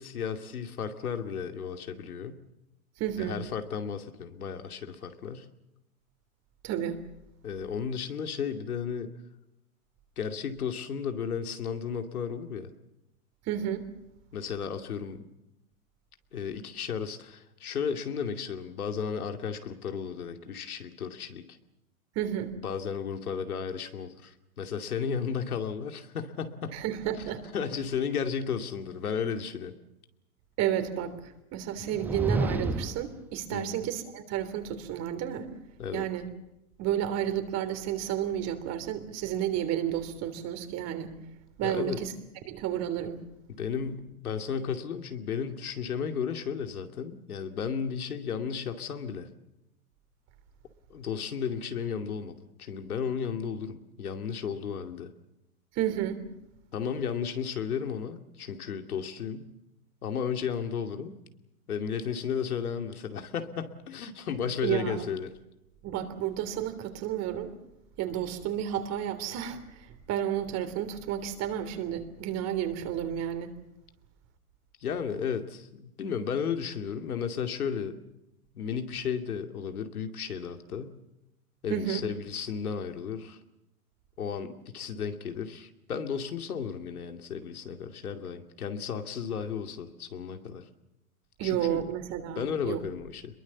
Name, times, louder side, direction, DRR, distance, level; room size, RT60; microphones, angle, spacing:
voice 1, 0.0-2.4 3.2-5.5 7.4-9.1 10.2-12.7 14.3-15.3 16.3-21.6 22.6-26.8 27.5-29.7 33.5-33.7 35.8-36.1 41.6-42.0 43.6-49.3 50.9-55.1 56.7-59.5 60.0-61.1 61.7-65.3 74.8-78.0 78.5-81.0 81.6-83.4 84.2-90.6 91.4-91.8 92.4-93.3, left 7 dB, 85° left, 7 dB, 2.6 m, -34 dB
voice 2, 3.0-3.4 6.6-7.0 13.5-13.8 22.1-22.5 26.7-27.4 30.6-35.5 35.9-36.3 36.8-41.1 41.6-42.1 42.5-43.2 55.7-56.2 64.6-65.1 65.8-67.5 68.0-73.5 81.7-82.1 91.4-92.8, right 10 dB, 35° right, 9 dB, 3.3 m, -31 dB
sound 1, 31.8-33.1, right 2 dB, 5° right, 1.0 m, -30 dB
26.0 x 22.0 x 7.2 m, 0.89 s
hypercardioid pair, 120°, 43 cm